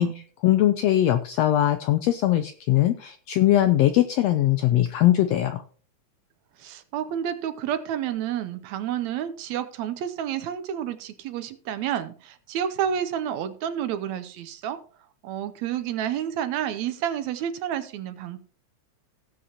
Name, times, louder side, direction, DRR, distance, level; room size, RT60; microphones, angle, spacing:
voice 1, 0.0-5.6, left 13 dB, 85° left, 10 dB, 1.5 m, -21 dB
voice 2, 6.6-14.8 15.2-18.4, right 9 dB, 75° right, 11 dB, 1.8 m, -30 dB
17.5 x 7.7 x 2.9 m, 0.43 s
omnidirectional pair, 3.5 m